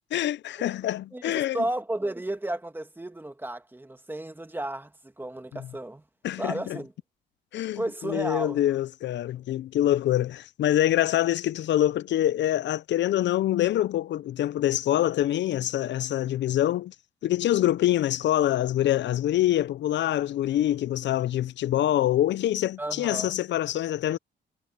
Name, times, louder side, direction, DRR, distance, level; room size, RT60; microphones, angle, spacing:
voice 1, 0.1-1.6 6.2-6.8 7.5-16.9 17.2-24.2, left 13 dB, 65° left, 0.5 m, -25 dB
voice 2, 1.1-6.0 6.4-6.9 7.8-8.6 22.8-23.3, right 1 dB, 10° right, 1.9 m, -33 dB
cardioid pair, 90°, 20 cm